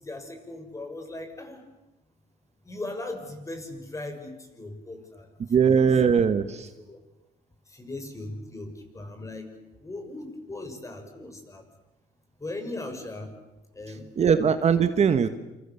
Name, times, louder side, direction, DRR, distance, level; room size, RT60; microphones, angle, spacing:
voice 1, 0.0-1.6 2.6-5.3 5.7-5.8 6.8-7.0 7.7-9.5 9.8-11.6 12.4-13.3 13.7-14.0, left 2 dB, 20° left, 5 dB, 6.5 m, -38 dB
voice 2, 5.5-6.7 14.2-15.3, right 6 dB, 40° right, 10 dB, 1.5 m, -20 dB
28.0 x 27.5 x 7.2 m, 1.0 s
cardioid pair, 110°, 17 cm